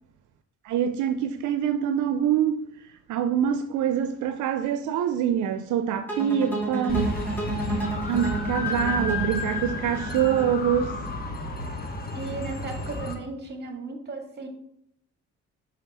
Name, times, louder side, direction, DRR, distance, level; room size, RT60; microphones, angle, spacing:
voice 1, 0.6-7.2 8.1-11.0, right 9 dB, 75° right, 0.5 m, -25 dB
sound 1, 6.1-11.2, right 1 dB, 5° left, 2.3 m, -31 dB
sound 2, 6.9-13.1, left 2 dB, 30° left, 1.4 m, -31 dB
voice 2, 12.1-14.5, right 3 dB, 35° right, 1.9 m, -36 dB
5.7 x 4.3 x 6.1 m
cardioid pair, 90°, 30 cm